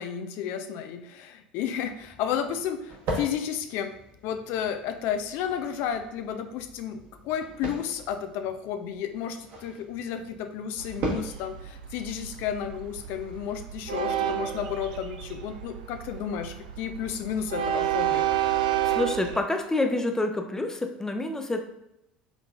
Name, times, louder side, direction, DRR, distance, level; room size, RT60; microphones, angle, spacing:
voice 1, 0.0-4.0 4.2-18.3, left 8 dB, 60° left, 8 dB, 0.5 m, -32 dB
sound 1, 1.6-14.0, right 1 dB, 60° right, 1.3 m, -40 dB
Train, 10.8-19.4, right 11 dB, 75° right, 0.4 m, -31 dB
voice 2, 18.8-21.6, left 2 dB, 10° left, 5 dB, 0.7 m, -27 dB
4.7 x 3.6 x 2.4 m, 0.82 s
hypercardioid pair, 70°, 4 cm